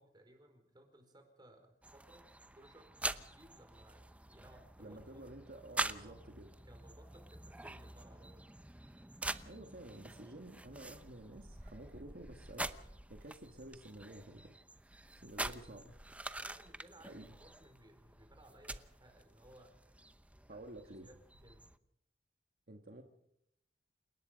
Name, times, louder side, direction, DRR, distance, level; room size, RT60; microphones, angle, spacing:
voice 1, 0.0-5.2 6.0-6.2 6.6-8.5 16.4-20.0 20.5-20.6 21.0-21.7, right 1 dB, 25° right, 5 dB, 4.8 m, -61 dB
sound 1, 1.8-21.8, right 2 dB, 10° right, 0.8 m, -46 dB
voice 2, 4.8-6.5 9.4-14.6 15.2-15.9 17.1-17.3 20.5-21.1 22.7-23.0, right 1 dB, 60° right, 4 dB, 1.7 m, -51 dB
29.0 x 18.5 x 5.2 m, 0.76 s
head